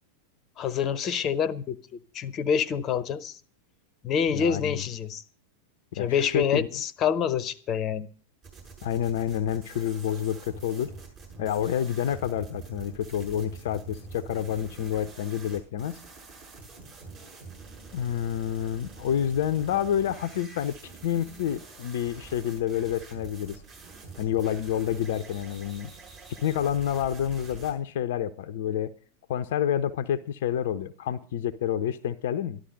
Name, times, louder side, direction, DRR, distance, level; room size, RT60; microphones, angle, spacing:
voice 1, 0.6-1.8 2.1-3.3 4.0-5.2 5.9-8.1, left 7 dB, 30° left, 0.9 m, -27 dB
voice 2, 4.3-4.8 5.9-6.7 8.8-10.9 11.4-16.0 17.9-20.8 21.0-23.6 24.2-25.9 26.4-28.9 29.3-32.6, left 10 dB, 55° left, 0.6 m, -28 dB
sound 1, 8.4-27.7, right 3 dB, 35° right, 6.8 m, -46 dB
13.0 x 12.0 x 5.3 m
figure-of-eight pair, 90°, 0 cm